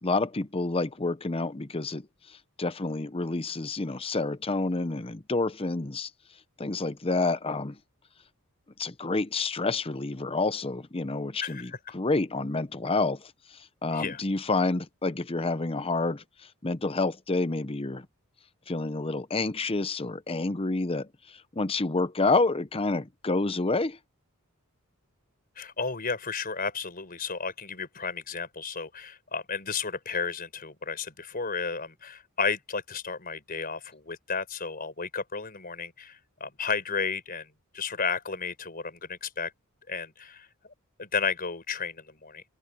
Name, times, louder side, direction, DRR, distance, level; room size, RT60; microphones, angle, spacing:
voice 1, 0.0-6.1 6.6-7.8 8.8-13.3 13.8-16.2 16.6-18.1 18.7-21.1 21.6-24.0, left 3 dB, 25° left, 0.8 m, -28 dB
voice 2, 11.4-11.8 13.9-14.2 25.6-39.5 39.9-40.5 41.0-42.5, left 5 dB, 40° left, 4.8 m, -33 dB
open air
head